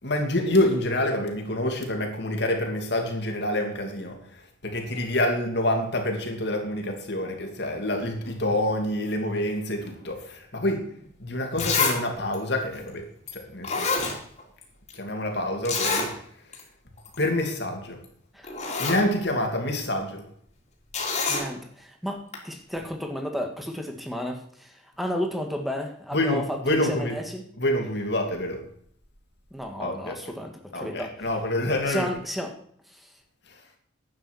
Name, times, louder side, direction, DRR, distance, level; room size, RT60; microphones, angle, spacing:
voice 1, 0.0-10.9 11.2-14.1 14.9-16.2 17.2-18.0 18.8-20.3 26.1-27.1 27.6-28.6 29.8-30.1 30.7-32.1 33.5-33.6, left 1 dB, 55° left, 3 dB, 2.7 m, -27 dB
Zipper (clothing), 11.0-11.1 11.6-12.0 12.3-12.4 13.3-13.4 13.6-14.6 14.9-15.0 15.7-16.1 16.5-16.6 17.0-17.2 18.0-18.1 18.4-19.0 20.9-21.5 22.3-22.4, left 4 dB, 35° left, 3.0 m, -26 dB
voice 2, 21.3-27.4 29.5-31.1 31.9-32.5 32.9-33.1, equal, ahead, 3 dB, 1.7 m, -33 dB
11.0 x 9.1 x 6.3 m, 0.63 s
head